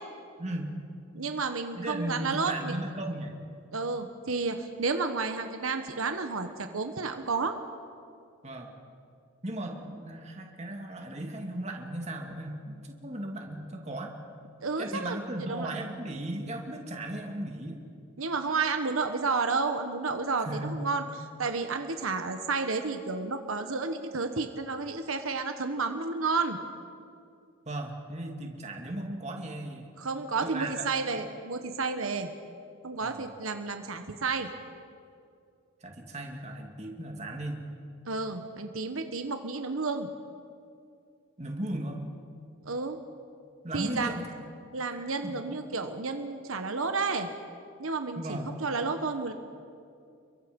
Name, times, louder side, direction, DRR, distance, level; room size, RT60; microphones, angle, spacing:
voice 1, 0.4-0.8 1.8-3.3 8.4-8.7 9.4-14.1 14.8-17.8 20.4-20.8 27.7-30.0 30.4-30.8 33.0-33.2 35.8-37.6 41.4-42.1 43.6-44.3 44.9-45.3 48.1-48.5, right 1 dB, 30° right, 2 dB, 2.6 m, -36 dB
voice 2, 1.1-2.7 3.7-7.5 14.6-15.8 18.2-21.0 21.4-26.6 30.0-32.3 32.8-34.5 38.1-40.1 42.6-43.0 43.7-44.1 44.7-47.3 47.8-49.3, right 4 dB, 80° right, 7 dB, 1.3 m, -31 dB
29.5 x 23.0 x 5.4 m, 2.4 s
head